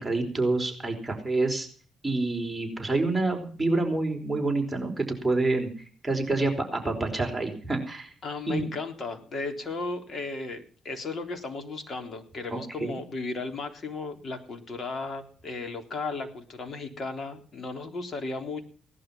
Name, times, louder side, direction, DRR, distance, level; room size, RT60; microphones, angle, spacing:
voice 1, 0.0-1.7 2.0-5.7 6.0-8.1 8.5-8.7 12.5-13.0, right 2 dB, 5° right, 1 dB, 4.7 m, -27 dB
voice 2, 8.2-18.6, left 3 dB, 45° left, 5 dB, 3.8 m, -35 dB
18.0 x 11.5 x 5.7 m, 0.44 s
cardioid pair, 90°, 0 cm